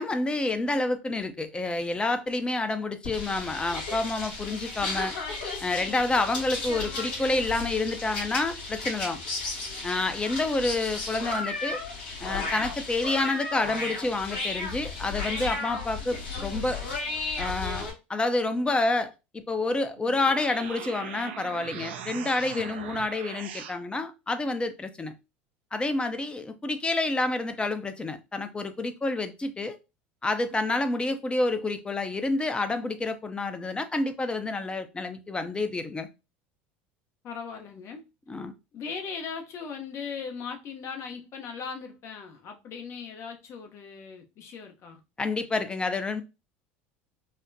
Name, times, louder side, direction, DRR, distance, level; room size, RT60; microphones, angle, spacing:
voice 1, 0.0-5.1 5.6-9.2 9.8-11.8 12.2-16.8 17.4-25.1 25.7-29.8 30.2-36.1 38.3-38.5 45.2-46.2, left 2 dB, 15° left, 0.6 m, -28 dB
sound 1, 3.0-17.9, left 3 dB, 75° left, 1.9 m, -34 dB
sound 2, 20.0-23.8, right 8 dB, 80° right, 0.5 m, -40 dB
voice 2, 37.2-38.1 38.7-45.0, left 6 dB, 45° left, 0.8 m, -38 dB
4.1 x 2.1 x 2.6 m
hypercardioid pair, 90°, 6 cm